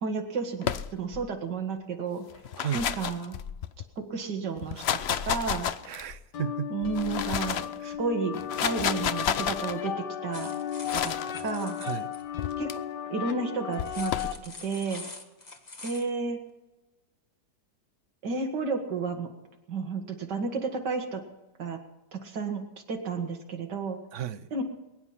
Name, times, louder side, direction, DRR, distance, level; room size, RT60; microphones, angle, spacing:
voice 1, 0.0-2.3 2.7-3.4 4.0-4.8 5.2-5.7 6.7-10.5 10.9-11.1 11.4-11.8 12.6-12.7 13.1-14.2 14.4-15.0 15.8-16.4 18.2-19.3 19.7-21.2 21.6-21.8 22.1-24.0 24.5-24.6, right 4 dB, 90° right, 3 dB, 2.3 m, -32 dB
sound 1, 0.6-1.3 2.3-3.8 4.6-6.2 6.8-7.8 8.3-9.7 10.9-11.3 12.4-12.7 13.8-14.4, left 9 dB, 65° left, 0.6 m, -31 dB
voice 2, 2.5-2.9 4.7-4.8 5.8-6.7 7.8-8.0 11.8-12.1 24.1-24.5, right 10 dB, 60° right, 14 dB, 0.9 m, -34 dB
sound 2, 6.3-14.3, left 10 dB, 85° left, 1.8 m, -35 dB
sound 3, 10.3-12.2 13.7-16.1, left 3 dB, 25° left, 1.5 m, -44 dB
21.5 x 10.5 x 5.8 m, 1.1 s
omnidirectional pair, 1.8 m